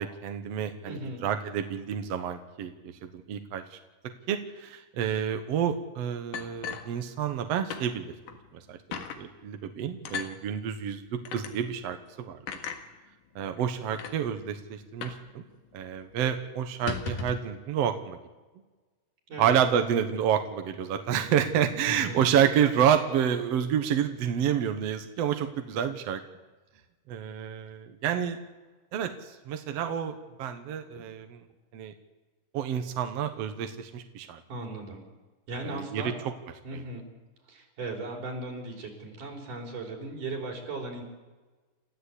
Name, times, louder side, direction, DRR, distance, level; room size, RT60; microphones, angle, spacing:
voice 1, 0.0-2.7 3.0-3.8 4.3-8.1 8.5-12.4 13.4-15.4 15.7-18.2 19.4-26.2 27.1-28.4 28.9-31.4 31.7-31.9 32.5-34.4 35.6-36.1 36.7-36.8, right 9 dB, 60° right, 7 dB, 2.0 m, -29 dB
voice 2, 0.9-1.3 19.3-19.5 21.8-22.3 34.5-35.0 35.5-36.2 36.6-37.1 37.5-41.0, right 2 dB, 75° right, 1 dB, 5.8 m, -37 dB
sound 1, 6.3-7.4 7.7-7.9 8.3-8.4 8.9-9.2 10.0-10.3 11.2-11.5 12.5-12.8 13.6-13.7 13.9-14.2 15.0-15.3 15.5-15.6 16.0-16.2 16.7-17.5, left 6 dB, 85° left, 3.2 m, -36 dB
29.0 x 14.0 x 8.4 m, 1.3 s
omnidirectional pair, 3.7 m